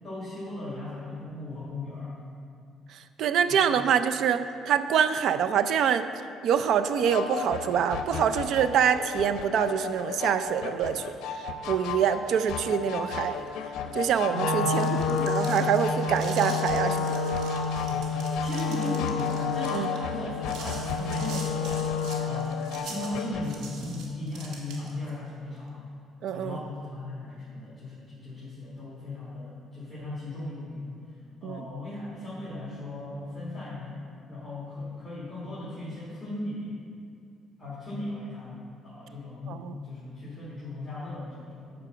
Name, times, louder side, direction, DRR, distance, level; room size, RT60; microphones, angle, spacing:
voice 1, 0.0-2.1 3.4-3.9 14.6-15.3 15.6-15.8 17.8-25.8 26.3-31.2 31.4-34.0 34.3-36.7 37.6-38.6 38.8-41.9, left 2 dB, 5° left, -11 dB, 2.5 m, -37 dB
voice 2, 3.2-6.1 6.4-11.0 11.3-13.5 13.9-17.2 19.7-19.9 26.2-26.6 31.4-31.6 39.5-39.7, right 8 dB, 65° right, 11 dB, 0.4 m, -25 dB
sound 1, 7.0-23.5, left 6 dB, 85° left, 0.6 m, -35 dB
Wind instrument woodwind instrument, 14.3-22.5, left 4 dB, 65° left, 1.2 m, -29 dB
sound 2, 14.7-25.1, right 4 dB, 85° right, 1.5 m, -44 dB
11.0 x 4.8 x 6.8 m, 2.3 s
cardioid pair, 125°, 0 cm